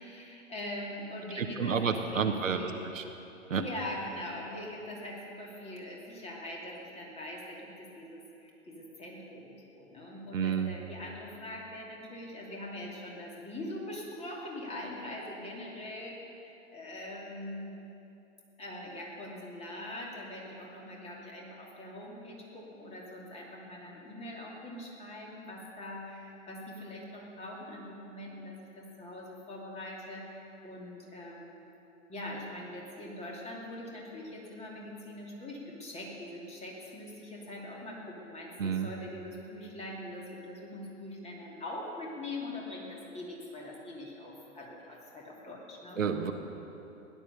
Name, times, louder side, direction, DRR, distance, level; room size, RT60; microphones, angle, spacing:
voice 1, 0.0-2.8 3.5-17.7 18.6-31.7 32.1-46.1, left 1 dB, 15° left, -2 dB, 2.8 m, -42 dB
voice 2, 1.4-3.0 3.5-3.6 10.3-10.7 38.6-38.9 46.0-46.3, right 6 dB, 75° right, 6 dB, 1.2 m, -30 dB
16.5 x 11.0 x 6.7 m, 3.0 s
figure-of-eight pair, 110°, 40 cm